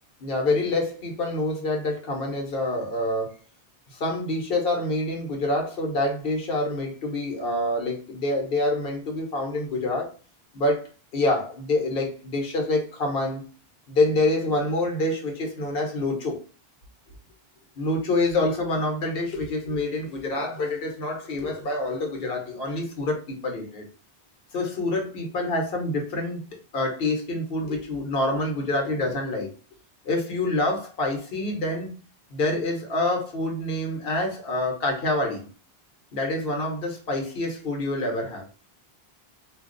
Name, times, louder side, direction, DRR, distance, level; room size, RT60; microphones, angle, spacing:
voice 1, 0.2-3.3 3.9-10.1 10.5-10.9 11.1-13.5 13.9-16.4 17.8-23.9 24.5-26.4 26.7-29.5 30.0-31.9 32.3-35.5 36.1-38.5, left 2 dB, 65° left, 1.1 m, -26 dB
2.5 x 2.3 x 3.7 m
omnidirectional pair, 1.0 m